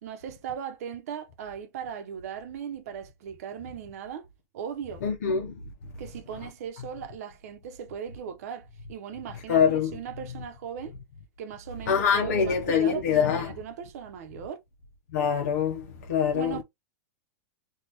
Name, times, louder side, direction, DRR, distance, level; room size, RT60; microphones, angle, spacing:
voice 1, 0.0-4.3 4.5-5.0 6.0-11.0 11.4-14.6 16.3-16.6, right 8 dB, 65° right, 0.8 m, -38 dB
voice 2, 5.0-5.6 9.5-9.9 11.9-13.5 15.1-16.6, left 7 dB, 85° left, 0.8 m, -24 dB
3.5 x 2.4 x 2.9 m
supercardioid pair, 145°, 9 cm